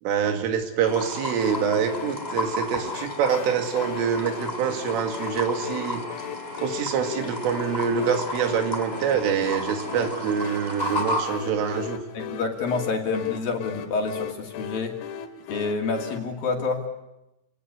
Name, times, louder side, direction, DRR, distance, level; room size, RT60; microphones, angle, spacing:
voice 1, 0.0-6.0 6.6-12.0, right 7 dB, 80° right, 5 dB, 4.9 m, -25 dB
sound 1, 0.8-11.2, left 1 dB, 10° left, 4.4 m, -33 dB
sound 2, 1.4-16.2, left 8 dB, 80° left, 4.2 m, -38 dB
voice 2, 12.1-14.9 15.5-16.8, left 4 dB, 50° left, 2 dB, 3.9 m, -28 dB
29.0 x 19.0 x 9.8 m, 0.92 s
omnidirectional pair, 5.8 m